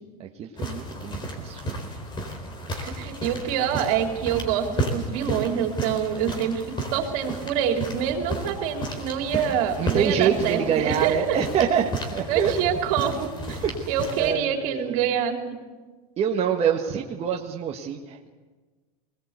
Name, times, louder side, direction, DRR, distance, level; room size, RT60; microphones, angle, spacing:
voice 1, 0.2-1.8 9.8-12.5 13.6-15.0 16.2-18.3, right 8 dB, 30° right, 0 dB, 1.6 m, -26 dB
sound 1, 0.6-14.3, right 1 dB, 25° left, 4.2 m, -33 dB
voice 2, 2.8-6.6 6.9-11.4 12.3-13.6 13.9-15.6, right 8 dB, 60° right, 3 dB, 3.8 m, -26 dB
21.5 x 20.0 x 8.3 m, 1.4 s
supercardioid pair, 125°, 20 cm